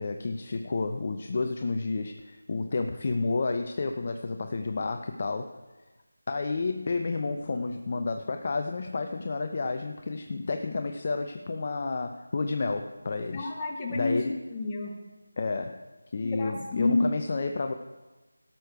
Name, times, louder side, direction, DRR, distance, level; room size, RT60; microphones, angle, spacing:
voice 1, 0.0-5.6 6.3-13.5 13.9-14.4 15.4-15.8 16.1-17.7, left 3 dB, 30° left, 6 dB, 0.5 m, -30 dB
voice 2, 13.3-14.9 16.4-17.1, left 2 dB, 15° left, -1 dB, 1.2 m, -29 dB
17.5 x 6.6 x 4.7 m, 1.2 s
figure-of-eight pair, 175°, 0 cm